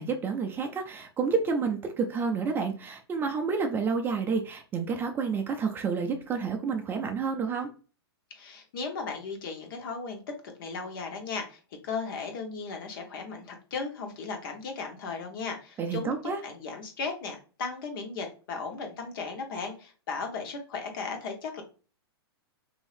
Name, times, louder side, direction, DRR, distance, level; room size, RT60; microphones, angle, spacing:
voice 1, 0.0-7.7 15.8-16.4, right 5 dB, 15° right, 3 dB, 0.4 m, -29 dB
voice 2, 8.3-10.2 10.6-16.1 16.4-21.6, left 4 dB, 55° left, 4 dB, 1.0 m, -36 dB
3.0 x 2.7 x 3.2 m, 0.36 s
hypercardioid pair, 135°, 13 cm